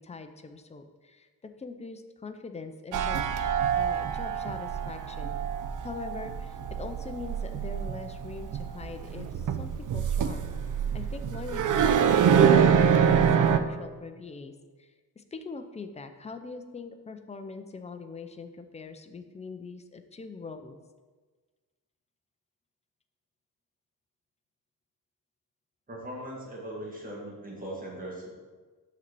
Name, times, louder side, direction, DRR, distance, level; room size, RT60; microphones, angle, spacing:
voice 1, 0.0-3.3 3.8-5.3 5.8-10.5 10.9-13.3 13.6-14.5 14.8-14.9 15.2-20.8, left 4 dB, 20° left, 7 dB, 0.4 m, -42 dB
sound 1, 2.9-13.6, right 7 dB, 55° right, 0.5 m, -25 dB
voice 2, 25.9-28.3, right 1 dB, 20° right, -3 dB, 1.7 m, -39 dB
6.1 x 4.0 x 5.9 m, 1.4 s
wide cardioid pair, 135°, 38 cm